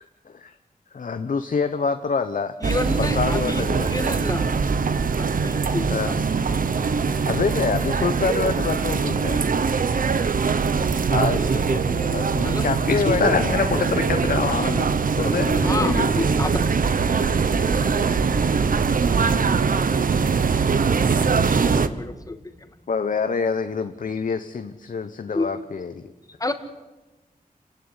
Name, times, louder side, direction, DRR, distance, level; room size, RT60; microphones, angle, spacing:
voice 1, 0.2-0.5 0.9-2.5 3.0-3.9 5.9-6.1 7.3-9.4 11.1-13.4 22.9-26.0, left 5 dB, 60° left, 8 dB, 1.1 m, -26 dB
voice 2, 2.6-4.5 5.2-6.2 11.3-11.7 12.4-12.6 15.6-16.5 21.8-22.4 25.3-25.5 26.4-26.5, left 2 dB, 25° left, 7 dB, 2.0 m, -29 dB
sound 1, 2.6-21.9, right 5 dB, 70° right, 1.2 m, -22 dB
voice 3, 12.9-16.1, left 4 dB, 85° left, 4 dB, 3.0 m, -25 dB
28.5 x 15.5 x 9.8 m, 1.2 s
wide cardioid pair, 100°, 15 cm